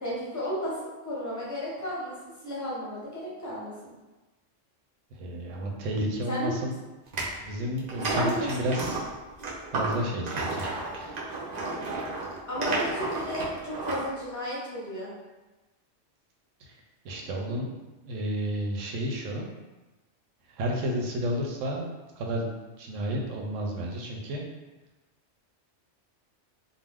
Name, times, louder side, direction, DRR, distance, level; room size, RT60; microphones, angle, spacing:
voice 1, 0.0-3.9 6.3-6.6 8.1-8.7 12.5-15.1, equal, 20° left, -6 dB, 0.6 m, -33 dB
voice 2, 5.2-6.7 7.4-9.0 9.7-11.2 16.6-16.7 17.0-17.7 18.1-19.5 20.6-22.5 22.8-24.4, equal, 80° right, 0 dB, 0.9 m, -31 dB
sound 1, 7.1-7.3 7.8-14.1, right 2 dB, 55° right, 0.5 m, -32 dB
2.4 x 2.1 x 3.3 m, 1.1 s
omnidirectional pair, 1.3 m